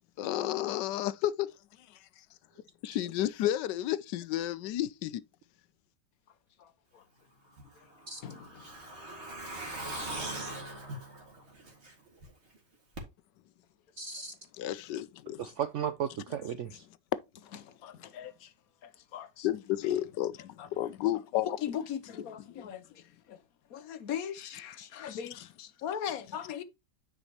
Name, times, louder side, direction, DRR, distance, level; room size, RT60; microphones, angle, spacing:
voice 1, 0.2-1.5 2.8-5.2 14.6-15.5 19.4-21.6 22.5-22.7, left 13 dB, 85° left, 1.2 m, -32 dB
voice 2, 6.6-7.0 7.8-7.9 8.2-8.8 9.9-10.0 17.6-18.5 18.8-19.5 19.8-19.9 20.6-20.7 21.6-23.4 23.7-26.6, left 9 dB, 65° left, 1.1 m, -40 dB
Truck, 7.6-12.3 12.6-12.7 13.0-13.1, right 1 dB, 40° right, 2.3 m, -41 dB
voice 3, 14.0-14.3 15.4-16.9, right 8 dB, 75° right, 0.7 m, -35 dB
9.7 x 5.1 x 2.9 m
omnidirectional pair, 1.8 m